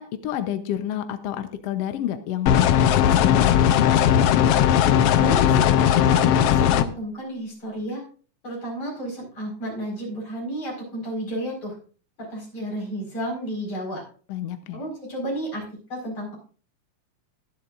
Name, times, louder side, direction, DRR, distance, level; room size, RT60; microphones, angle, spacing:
voice 1, 0.0-3.7 14.3-14.8, left 11 dB, 70° left, 9 dB, 1.6 m, -29 dB
sound 1, 2.5-6.8, left 10 dB, 85° left, 1.3 m, -18 dB
voice 2, 5.2-8.0 8.4-11.8 12.3-14.0 14.7-15.6 15.9-16.4, equal, 40° left, -2 dB, 5.7 m, -32 dB
22.5 x 7.5 x 2.5 m, 0.40 s
omnidirectional pair, 3.5 m